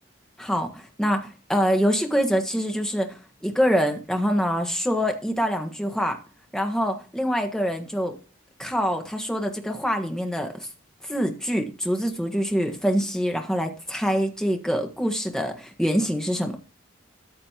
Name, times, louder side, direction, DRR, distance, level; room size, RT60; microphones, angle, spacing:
voice 1, 0.4-3.2 3.4-6.2 6.5-8.2 8.6-10.5 11.0-16.6, equal, 5° left, 3 dB, 1.4 m, -25 dB
13.5 x 7.5 x 2.9 m, 0.35 s
head